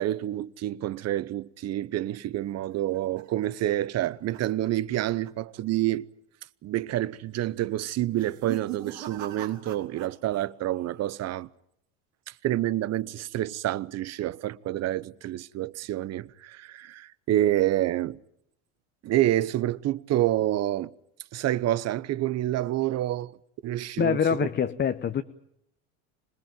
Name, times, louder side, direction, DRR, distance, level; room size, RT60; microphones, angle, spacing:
voice 1, 0.0-6.0 6.6-11.5 12.3-18.2 19.0-20.9 21.3-23.3 23.6-24.4, right 14 dB, 45° right, 0.9 m, -28 dB
sound 1, 2.5-5.0 5.2-5.6 5.9-6.0 6.8-7.2 8.0-10.5 10.7-11.3, right 12 dB, 85° right, 4.0 m, -42 dB
voice 2, 24.0-25.2, left 7 dB, 30° left, 1.0 m, -25 dB
26.0 x 19.5 x 9.1 m
hypercardioid pair, 90°, 37 cm